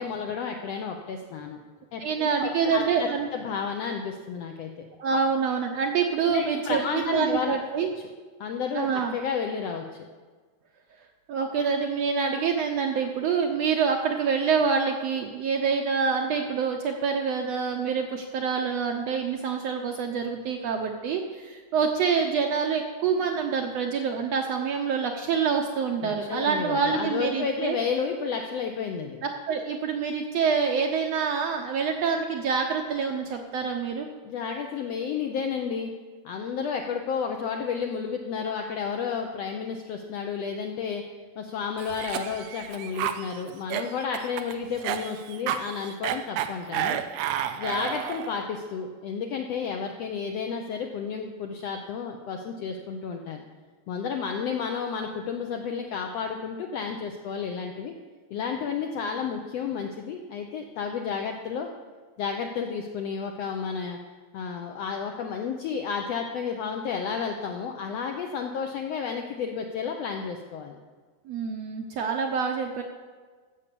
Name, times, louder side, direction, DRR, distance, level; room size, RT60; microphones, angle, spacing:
voice 1, 0.0-1.6 1.9-4.9 6.3-7.6 8.4-10.0 26.0-29.2 34.2-35.9 36.2-41.0 41.4-47.0 47.6-53.4 53.9-57.9 58.3-61.7 62.2-64.0 64.3-70.8, left 6 dB, 75° left, 3 dB, 1.5 m, -31 dB
voice 2, 2.0-3.3 5.0-7.9 8.7-9.1 11.3-27.8 29.2-34.1 71.3-72.8, right 6 dB, 70° right, 3 dB, 1.6 m, -26 dB
Cough, 41.8-48.4, right 10 dB, 90° right, 1.5 m, -31 dB
15.5 x 7.1 x 6.8 m, 1.5 s
omnidirectional pair, 3.8 m